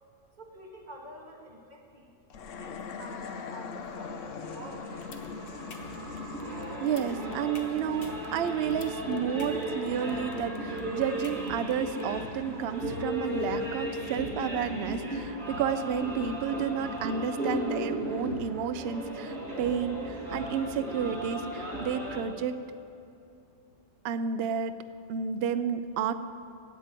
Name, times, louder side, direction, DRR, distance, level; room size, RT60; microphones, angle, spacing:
voice 1, 0.4-2.1 2.5-4.9, equal, 35° right, -1 dB, 1.7 m, -48 dB
sound 1, 2.3-13.7, left 5 dB, 75° left, 1.1 m, -43 dB
sound 2, 3.5-22.2, equal, 80° right, 2.1 m, -36 dB
sound 3, 5.0-12.0, left 5 dB, 50° left, 1.1 m, -48 dB
voice 2, 6.8-22.6 24.0-24.7 25.1-26.1, right 7 dB, 65° right, 11 dB, 0.7 m, -31 dB
8.6 x 8.2 x 8.8 m, 2.8 s
omnidirectional pair, 1.3 m